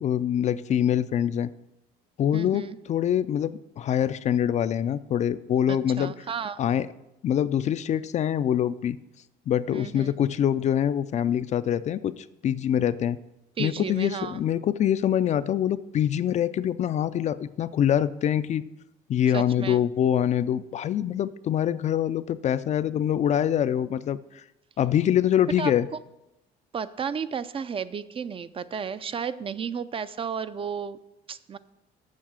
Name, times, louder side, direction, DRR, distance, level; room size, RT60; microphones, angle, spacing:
voice 1, 0.0-1.5 2.2-6.1 6.6-6.9 7.2-9.0 9.5-13.2 13.6-18.7 19.1-24.4 24.8-25.9, left 10 dB, 45° left, 14 dB, 0.4 m, -25 dB
voice 2, 2.3-2.8 6.0-6.6 9.7-10.1 13.6-14.4 19.3-19.8 25.6-25.7 26.7-31.0 31.3-31.6, right 6 dB, 30° right, 14 dB, 0.4 m, -33 dB
7.4 x 6.3 x 7.5 m, 0.90 s
cardioid pair, 110°, 17 cm